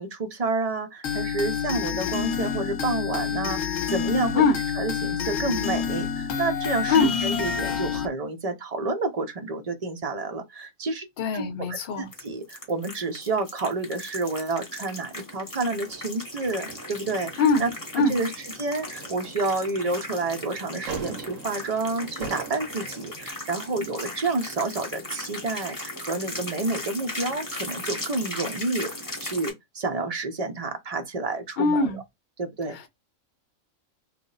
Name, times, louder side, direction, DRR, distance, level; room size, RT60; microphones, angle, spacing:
voice 1, 0.0-4.4 4.7-11.1 11.3-28.9 29.2-32.0 32.4-32.8, right 3 dB, 40° right, 0.6 m, -29 dB
sound 1, 1.0-8.1, left 7 dB, 70° left, 1.1 m, -28 dB
voice 2, 11.2-12.1 17.4-17.7 17.9-18.2 31.6-32.0 32.7-32.9, left 4 dB, 50° left, 0.9 m, -22 dB
sound 2, 12.1-29.5, left 1 dB, 15° left, 1.0 m, -38 dB
sound 3, 15.6-23.3, right 5 dB, 70° right, 1.4 m, -42 dB
3.2 x 2.1 x 3.8 m
omnidirectional pair, 1.4 m